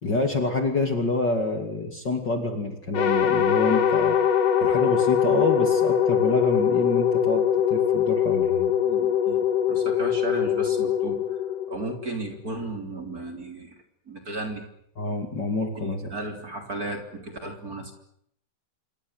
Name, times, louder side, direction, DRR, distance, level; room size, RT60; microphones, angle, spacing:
voice 1, 0.0-4.2 4.6-8.7 15.0-16.1, left 2 dB, 35° left, 4 dB, 2.9 m, -27 dB
sound 1, 2.9-12.3, left 8 dB, 80° left, 3.3 m, -22 dB
voice 2, 8.8-11.2 11.7-13.8 14.1-14.6 15.8-17.9, right 2 dB, 25° right, 4 dB, 3.7 m, -35 dB
27.5 x 23.5 x 8.0 m, 0.72 s
omnidirectional pair, 3.7 m